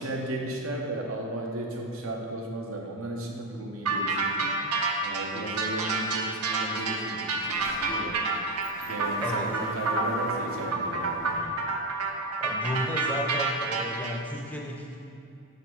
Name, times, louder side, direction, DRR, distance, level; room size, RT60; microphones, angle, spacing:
voice 1, 0.0-4.5 5.0-8.2 8.8-11.5, right 1 dB, 65° right, 0 dB, 0.9 m, -35 dB
sound 1, 3.9-14.1, right 3 dB, 90° right, 0.7 m, -29 dB
Sliding door, 6.8-6.9 7.2-12.2, left 1 dB, 60° left, 0.9 m, -44 dB
voice 2, 9.2-9.6 12.4-15.0, equal, 5° left, -1 dB, 0.7 m, -33 dB
6.1 x 4.0 x 6.1 m, 2.6 s
head